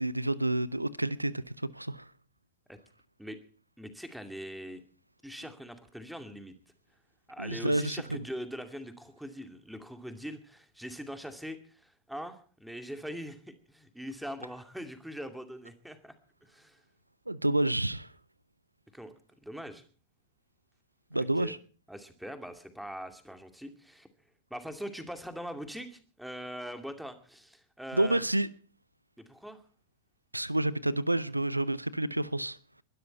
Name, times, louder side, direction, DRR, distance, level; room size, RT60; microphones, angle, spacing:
voice 1, 0.0-2.1 7.4-8.0 17.3-18.1 21.1-21.6 27.9-28.5 30.3-32.6, right 1 dB, 85° right, 0.7 m, -29 dB
voice 2, 3.8-4.8 5.2-6.6 7.3-16.1 16.4-16.8 18.9-19.1 19.4-19.8 21.1-21.5 21.9-24.1 24.5-28.2 29.2-29.6, equal, ahead, 2.4 m, -42 dB
21.5 x 12.5 x 4.5 m
figure-of-eight pair, 90°, 0 cm